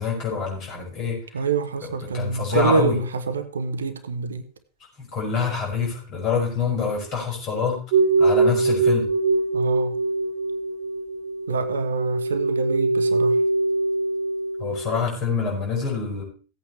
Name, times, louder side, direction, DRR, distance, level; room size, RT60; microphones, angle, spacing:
voice 1, 0.0-1.2 2.1-2.9 5.0-7.8 8.2-9.0 14.6-16.2, left 5 dB, 35° left, 5.9 m, -26 dB
voice 2, 1.3-4.4 9.5-9.9 11.5-13.4, right 5 dB, 70° right, 1.0 m, -26 dB
sound 1, 7.9-15.0, right 3 dB, 50° right, 1.1 m, -22 dB
16.5 x 8.5 x 3.3 m
figure-of-eight pair, 90°, 0 cm